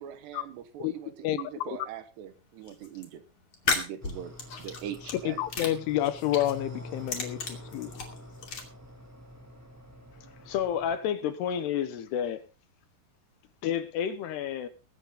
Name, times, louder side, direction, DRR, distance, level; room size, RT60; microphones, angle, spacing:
voice 1, 0.0-3.2 3.7-4.3 4.6-5.5, right 10 dB, 70° right, 3.1 m, -41 dB
sound 1, 2.7-3.0 3.5-5.2 5.5-6.6 6.9-8.6, left 5 dB, 45° left, 3.5 m, -33 dB
sound 2, 4.0-11.0, equal, 15° right, 0.5 m, -47 dB
voice 2, 5.3-8.0, left 13 dB, 90° left, 3.6 m, -29 dB
voice 3, 10.4-12.4 13.6-14.7, left 9 dB, 70° left, 3.0 m, -30 dB
22.0 x 9.1 x 3.8 m
omnidirectional pair, 5.4 m